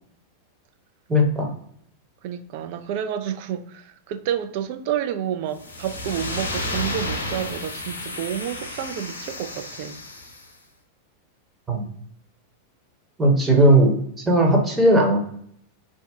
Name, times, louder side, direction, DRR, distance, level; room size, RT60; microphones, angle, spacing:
voice 1, 1.1-1.5 11.7-11.8 13.2-14.0 14.3-15.2, right 1 dB, 10° right, 0.9 m, -17 dB
voice 2, 2.2-10.0, right 9 dB, 45° right, 0.3 m, -29 dB
sound 1, 5.5-10.5, left 2 dB, 75° left, 0.6 m, -32 dB
2.6 x 2.1 x 3.5 m
figure-of-eight pair, 90°, 0 cm